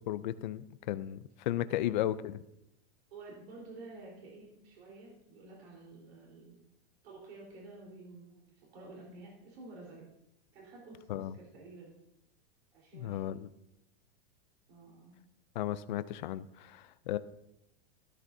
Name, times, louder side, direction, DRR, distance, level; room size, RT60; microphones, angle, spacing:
voice 1, 0.1-1.2 1.5-2.4 11.1-11.3 12.9-13.5 15.6-17.2, left 13 dB, 45° left, 15 dB, 0.4 m, -34 dB
voice 2, 3.1-6.6 7.0-10.1 10.5-11.9 12.7-13.5 14.7-15.2, right 3 dB, 70° right, -3 dB, 4.0 m, -51 dB
13.0 x 12.0 x 2.7 m, 0.83 s
supercardioid pair, 175°, 32 cm